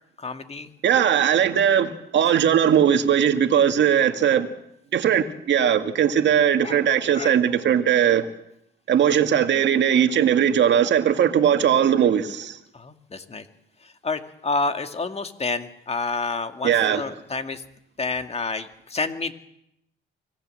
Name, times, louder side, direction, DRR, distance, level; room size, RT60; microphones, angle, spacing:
voice 1, 0.2-0.7 6.6-6.8 7.1-7.4 12.7-13.4 14.0-17.6 18.0-19.3, left 3 dB, 30° left, 2.0 m, -29 dB
voice 2, 0.8-4.5 4.9-8.3 8.9-12.6 16.6-17.0, right 9 dB, 65° right, 2.0 m, -19 dB
25.0 x 17.5 x 7.7 m
cardioid pair, 90°, 20 cm